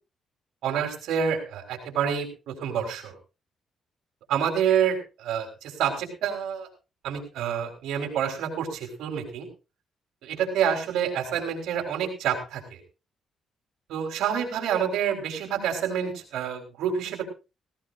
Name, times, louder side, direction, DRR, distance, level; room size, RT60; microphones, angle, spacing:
voice 1, 0.6-3.2 4.3-6.7 7.0-9.5 10.2-12.8 13.9-17.2, right 8 dB, 85° right, 3 dB, 4.2 m, -28 dB
17.5 x 17.0 x 2.6 m, 0.30 s
cardioid pair, 90°, 0 cm